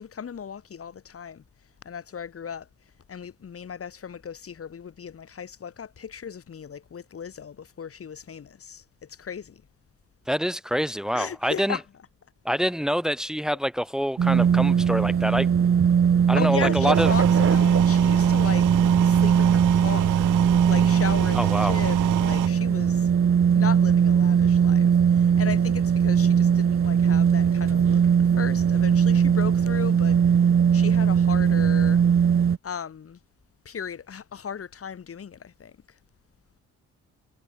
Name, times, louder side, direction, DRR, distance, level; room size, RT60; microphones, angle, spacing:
voice 1, 0.0-1.4 1.8-2.7 3.1-9.6 11.1-11.8 13.5-13.6 16.3-18.7 19.0-20.3 20.6-23.1 23.5-30.2 30.7-32.0 32.6-33.2 33.6-35.8, left 7 dB, 50° left, 5.9 m, -36 dB
voice 2, 10.3-11.8 12.5-15.5 16.3-17.1 21.3-21.8, equal, ahead, 3.7 m, -26 dB
sound 1, 14.2-32.6, right 7 dB, 45° right, 2.5 m, -20 dB
sound 2, 16.9-22.5, right 17 dB, 85° right, 1.1 m, -28 dB
cardioid pair, 90°, 30 cm